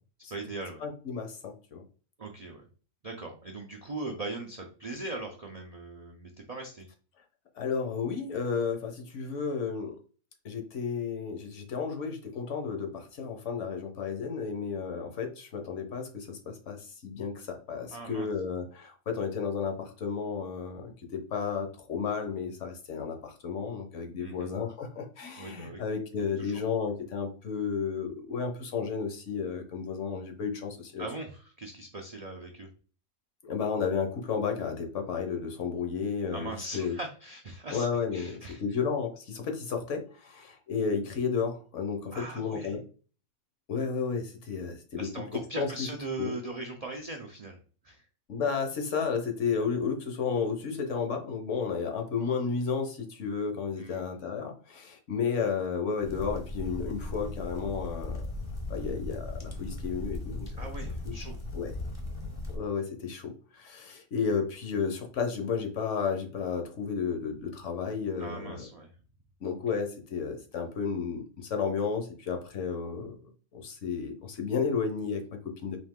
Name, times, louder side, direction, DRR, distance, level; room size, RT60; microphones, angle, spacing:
voice 1, 0.3-0.8 2.2-2.6 3.0-6.9 17.9-18.3 24.2-24.5 25.4-25.8 26.4-26.6 31.0-32.7 36.3-37.9 38.1-38.6 42.1-42.8 45.0-47.6 47.8-48.0 53.8-54.0 60.6-61.4 68.2-68.9, right 2 dB, 60° right, 2 dB, 0.4 m, -40 dB
voice 2, 0.8-1.8 7.5-10.0 10.4-31.0 33.4-37.0 37.7-42.8 43.7-45.9 46.2-46.3 48.3-58.3 58.7-60.7 61.0-61.2 61.5-61.7 62.5-68.6 69.4-73.2 73.5-75.8, left 5 dB, 65° left, 4 dB, 1.1 m, -32 dB
sound 1, 56.0-62.6, left 2 dB, 30° left, 0.6 m, -37 dB
4.2 x 2.6 x 3.6 m, 0.39 s
omnidirectional pair, 1.4 m